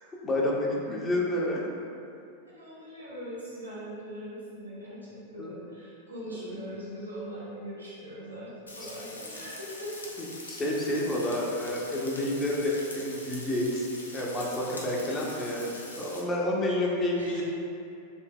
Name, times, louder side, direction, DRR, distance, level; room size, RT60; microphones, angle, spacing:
voice 1, 0.2-1.7 5.4-5.6 8.8-8.9 10.5-13.9 14.1-17.4, left 1 dB, 20° left, -3 dB, 0.9 m, -29 dB
voice 2, 2.4-10.1 16.6-17.4, equal, 75° right, -8 dB, 1.3 m, -41 dB
Frying (food), 8.7-16.2, left 2 dB, 75° left, 0.5 m, -44 dB
6.8 x 3.4 x 2.3 m, 2.6 s
figure-of-eight pair, 90°, 0 cm